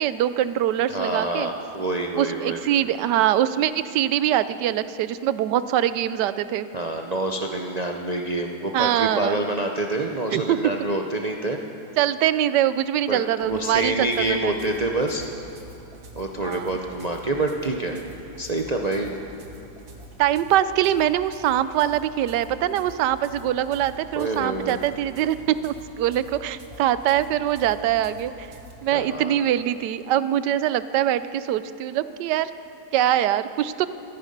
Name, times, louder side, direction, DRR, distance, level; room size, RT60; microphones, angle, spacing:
voice 1, 0.0-1.5 2.2-6.7 8.7-9.4 10.3-10.6 12.0-14.6 16.4-16.7 20.2-28.5 28.8-32.5 32.9-33.9, right 11 dB, 85° right, 14 dB, 1.2 m, -23 dB
voice 2, 0.9-2.6 6.7-11.6 13.1-15.2 16.1-18.0 18.4-19.2 24.2-24.8 28.9-29.4, right 2 dB, 50° right, 2 dB, 0.4 m, -27 dB
sound 1, 13.4-28.8, right 1 dB, 65° right, 1.9 m, -46 dB
15.5 x 14.0 x 5.3 m, 2.7 s
omnidirectional pair, 1.8 m